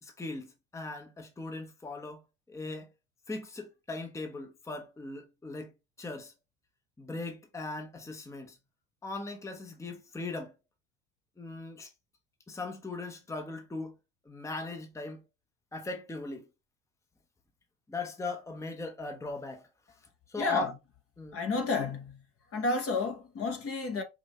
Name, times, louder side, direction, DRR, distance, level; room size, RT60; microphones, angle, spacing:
voice 1, 0.0-2.2 2.5-2.9 3.3-5.7 6.0-6.3 7.0-8.6 9.0-10.5 11.4-11.9 12.5-14.0 14.2-15.2 15.7-16.5 17.9-19.6 20.3-20.7 21.2-21.4, left 3 dB, 10° left, 0.9 m, -39 dB
voice 2, 20.4-20.7 21.3-22.2 22.5-24.0, left 3 dB, 35° left, 1.2 m, -31 dB
4.9 x 2.7 x 3.1 m
hypercardioid pair, 80°, 37 cm